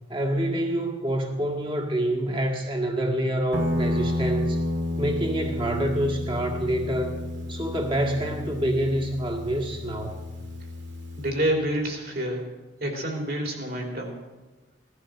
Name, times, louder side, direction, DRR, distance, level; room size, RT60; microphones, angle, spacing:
voice 1, 0.1-4.6 5.0-7.2 7.5-10.2, right 1 dB, 25° right, 0 dB, 1.8 m, -27 dB
Guitar, 3.5-11.4, left 1 dB, 65° right, 2.2 m, -31 dB
voice 2, 11.2-12.4 12.8-14.2, right 1 dB, 50° right, 1 dB, 3.3 m, -28 dB
17.0 x 13.0 x 6.4 m, 1.2 s
head